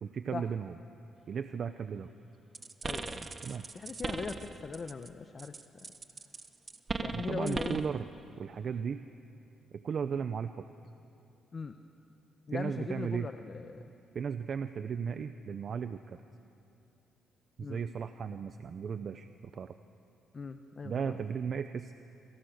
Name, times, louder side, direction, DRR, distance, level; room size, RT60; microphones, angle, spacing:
voice 1, 0.0-0.8 1.3-2.1 3.4-3.6 7.1-8.1 8.4-9.0 9.7-10.7 12.5-13.3 14.1-16.2 17.6-19.7 20.8-21.9, right 6 dB, 55° right, 10 dB, 0.8 m, -36 dB
sound 1, 2.5-5.1 5.4-7.9, right 4 dB, 35° right, 1.4 m, -39 dB
voice 2, 2.8-3.3 3.7-5.5 7.0-7.8 11.5-11.7 12.5-13.8 17.6-17.8 20.3-21.2, left 4 dB, 40° left, 8 dB, 1.1 m, -39 dB
27.5 x 26.5 x 6.6 m, 2.7 s
cardioid pair, 90°, 0 cm